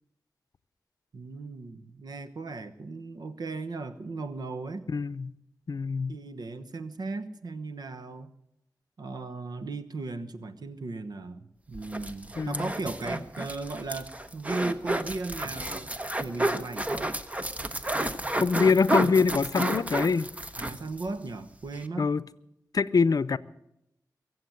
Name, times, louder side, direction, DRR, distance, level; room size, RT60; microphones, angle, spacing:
voice 1, 1.1-4.9 6.1-8.3 9.0-15.9 16.2-17.2 20.6-22.1, right 3 dB, 85° right, 1.1 m, -37 dB
voice 2, 4.9-5.3 5.7-6.1 12.4-12.7 18.4-20.3 22.0-22.2 22.7-23.4, left 5 dB, 65° left, 0.6 m, -24 dB
sound 1, 11.7-21.1 21.4-21.5 21.7-21.9, right 1 dB, 20° right, 1.0 m, -31 dB
23.5 x 7.8 x 7.9 m
wide cardioid pair, 85°, 7 cm